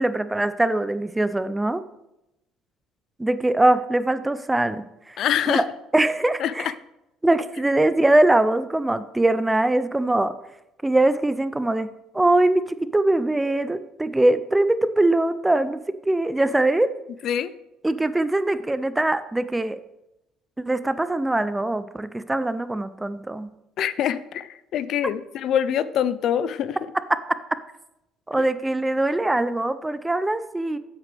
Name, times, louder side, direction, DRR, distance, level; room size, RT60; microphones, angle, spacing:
voice 1, 0.0-1.8 3.2-5.2 5.5-5.7 5.9-6.7 7.2-10.4 10.8-16.9 17.8-19.8 20.7-23.5 28.3-30.8, right 2 dB, 10° right, 13 dB, 0.4 m, -22 dB
voice 2, 5.2-5.7 6.4-6.7 17.2-17.5 23.8-26.8 28.4-28.5, left 9 dB, 55° left, 15 dB, 0.4 m, -25 dB
13.5 x 8.2 x 3.4 m, 0.90 s
cardioid pair, 155°, 0 cm